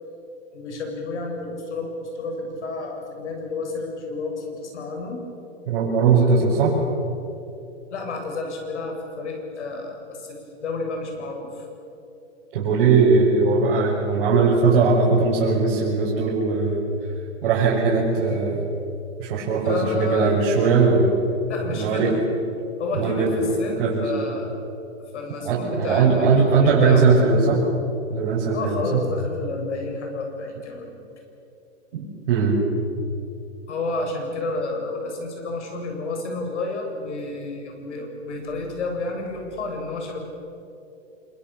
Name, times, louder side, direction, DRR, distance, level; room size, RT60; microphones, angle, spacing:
voice 1, 0.5-5.2 7.9-11.7 19.6-20.3 21.5-22.2 22.8-24.6 25.1-26.3 26.6-27.1 28.5-31.1 33.7-40.2, left 3 dB, 75° left, 2 dB, 7.6 m, -30 dB
voice 2, 5.7-6.8 12.5-16.8 17.4-18.7 19.2-21.1 21.7-22.1 22.9-23.4 23.8-24.1 25.4-27.6 28.1-29.0 31.9-32.6, right 4 dB, 55° right, -6 dB, 6.3 m, -19 dB
27.0 x 22.5 x 7.0 m, 2.8 s
hypercardioid pair, 150°, 36 cm